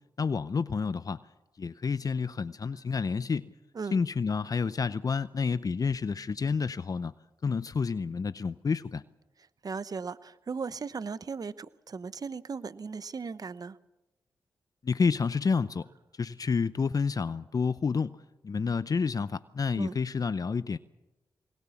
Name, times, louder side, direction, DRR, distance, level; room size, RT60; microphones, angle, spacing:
voice 1, 0.2-1.2 1.6-3.5 3.9-7.1 7.4-9.0 14.8-15.9 16.1-18.2 18.4-20.8, left 5 dB, 50° left, 14 dB, 0.7 m, -29 dB
voice 2, 9.6-13.8 19.7-20.0, right 5 dB, 50° right, 15 dB, 0.9 m, -37 dB
22.5 x 19.5 x 7.2 m, 1.0 s
supercardioid pair, 45°, 8 cm